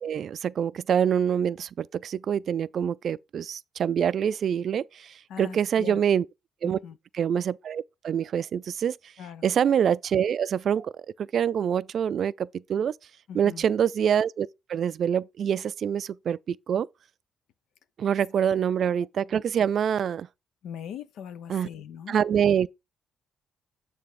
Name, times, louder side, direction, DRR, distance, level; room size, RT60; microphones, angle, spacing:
voice 1, 0.0-6.2 6.6-6.8 7.1-9.0 9.4-10.9 11.2-12.9 13.3-16.9 18.0-20.3 21.5-21.7 22.1-22.7, right 8 dB, 55° right, 0.3 m, -25 dB
voice 2, 5.3-6.0 6.6-7.0 9.2-9.4 13.3-13.7 20.6-22.2, left 8 dB, 75° left, 0.7 m, -40 dB
8.8 x 3.4 x 4.9 m
cardioid pair, 110°, 0 cm